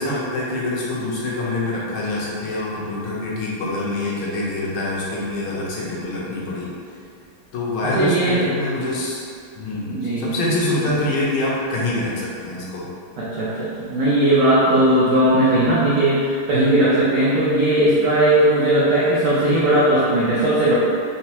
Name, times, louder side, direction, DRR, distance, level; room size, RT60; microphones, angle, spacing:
voice 1, 0.0-6.7 7.5-9.2 9.6-12.9, left 2 dB, 75° left, -5 dB, 1.5 m, -25 dB
voice 2, 7.8-8.5 9.9-10.3 13.2-20.7, right 1 dB, 80° right, -9 dB, 0.8 m, -18 dB
4.0 x 2.2 x 2.8 m, 2.4 s
omnidirectional pair, 2.3 m